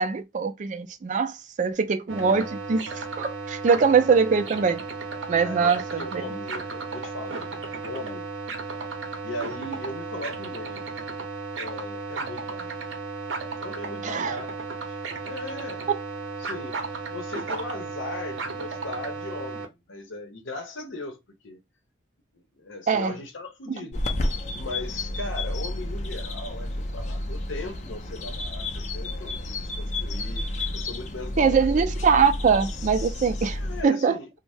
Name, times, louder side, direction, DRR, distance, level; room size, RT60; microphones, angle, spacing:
voice 1, 0.0-4.8 5.3-6.2 14.0-14.4 22.9-23.2 31.4-34.2, right 5 dB, 40° right, 0.3 m, -23 dB
sound 1, 2.1-19.7, right 4 dB, 75° right, 0.6 m, -34 dB
voice 2, 5.4-8.3 9.2-10.9 11.6-12.8 13.6-14.5 14.9-15.0 15.2-15.9 16.4-16.8 17.1-21.6 22.3-24.0 24.5-30.5 30.7-31.8 33.6-34.3, left 2 dB, 85° left, 0.8 m, -38 dB
sound 2, 23.9-33.8, left 1 dB, 40° left, 0.5 m, -31 dB
2.7 x 2.0 x 3.3 m
head